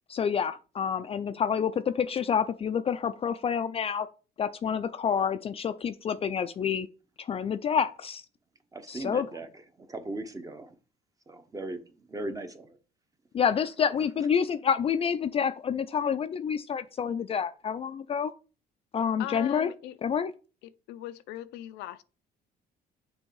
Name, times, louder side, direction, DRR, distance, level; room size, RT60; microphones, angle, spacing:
voice 1, 0.1-4.1 4.4-6.9 7.2-8.2 8.9-9.3 13.3-18.3 18.9-19.7 20.0-20.3, left 7 dB, 35° left, 0.4 m, -28 dB
voice 2, 8.7-10.8 11.3-12.8, right 2 dB, 20° right, 0.9 m, -38 dB
voice 3, 19.2-20.1 20.6-22.0, left 14 dB, 90° left, 0.5 m, -40 dB
6.3 x 3.4 x 4.7 m
cardioid pair, 110°, 17 cm